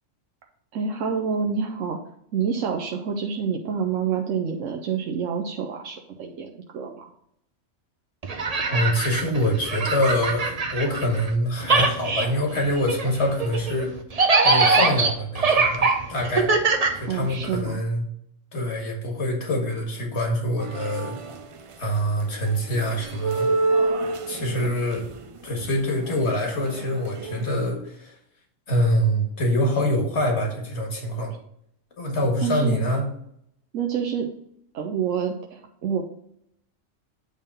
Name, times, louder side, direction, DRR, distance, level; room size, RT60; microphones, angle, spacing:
voice 1, 0.7-2.0 2.3-7.1 17.1-17.8 24.6-24.7 32.4-32.8 33.7-34.3 34.7-36.1, right 6 dB, 80° right, 3 dB, 1.1 m, -27 dB
sound 1, 8.2-11.3 11.6-17.6, right 3 dB, 35° right, 0.8 m, -23 dB
voice 2, 8.7-13.9 14.4-16.5 16.9-18.0 18.5-21.1 21.8-23.5 24.3-25.1 25.4-28.1 28.7-31.3 32.0-33.1, equal, 60° left, 1 dB, 2.0 m, -25 dB
sound 2, 20.6-21.7 22.2-27.5, right 3 dB, 60° right, 0.3 m, -28 dB
9.0 x 3.6 x 5.4 m, 0.71 s
omnidirectional pair, 1.3 m